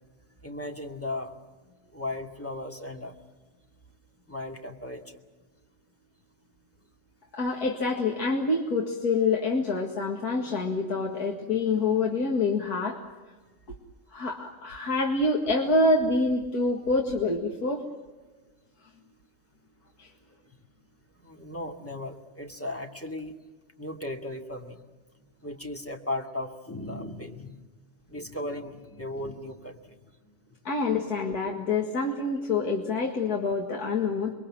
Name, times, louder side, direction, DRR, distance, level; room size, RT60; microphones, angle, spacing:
voice 1, 0.4-1.4 1.9-3.2 4.3-5.2 21.1-23.4 23.8-24.8 25.4-27.6 28.1-30.0 30.2-30.6, left 1 dB, 10° left, 2 dB, 2.3 m, -36 dB
voice 2, 7.3-13.0 13.7-13.8 14.1-17.8 20.0-20.1 30.6-34.3, left 3 dB, 85° left, 1 dB, 2.4 m, -26 dB
27.5 x 22.5 x 7.6 m, 1.3 s
omnidirectional pair, 1.6 m